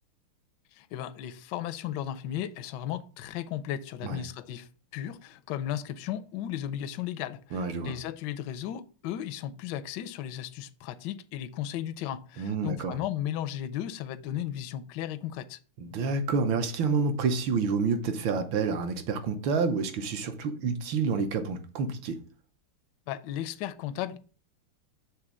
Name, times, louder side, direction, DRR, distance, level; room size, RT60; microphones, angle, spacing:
voice 1, 0.7-15.6 23.1-24.2, left 11 dB, 75° left, 1.0 m, -35 dB
voice 2, 7.5-7.9 12.4-13.0 15.8-22.2, right 4 dB, 70° right, 1.6 m, -28 dB
6.6 x 3.5 x 6.0 m
omnidirectional pair, 2.4 m